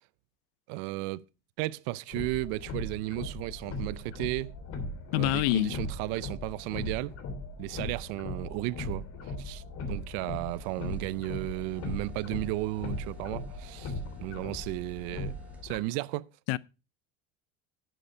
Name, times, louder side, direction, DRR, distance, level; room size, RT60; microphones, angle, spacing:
voice 1, 0.7-1.2 1.6-4.5 5.1-7.1 7.6-9.6 9.9-13.9 14.2-15.4 15.6-16.3, right 19 dB, 80° right, 0.6 m, -34 dB
sound 1, 2.1-15.8, left 2 dB, 55° left, 3.1 m, -39 dB
voice 2, 5.1-5.8 16.5-16.6, left 18 dB, 85° left, 0.6 m, -26 dB
sound 2, 10.5-15.6, right 1 dB, 5° right, 2.2 m, -56 dB
11.0 x 7.9 x 4.4 m
cardioid pair, 125°, 30 cm